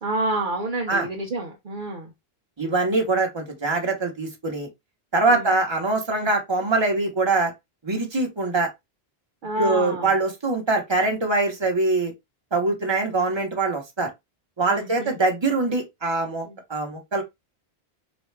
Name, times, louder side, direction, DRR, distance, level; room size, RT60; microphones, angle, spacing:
voice 1, 0.0-2.1 5.3-5.6 6.2-6.3 9.4-10.2 14.7-15.2 16.5-16.6, right 2 dB, 55° right, 0.8 m, -29 dB
voice 2, 2.6-4.7 5.1-7.5 7.8-8.7 9.6-12.1 12.5-14.1 14.6-17.2, right 3 dB, 25° right, 1.1 m, -23 dB
4.0 x 2.3 x 3.3 m
omnidirectional pair, 1.1 m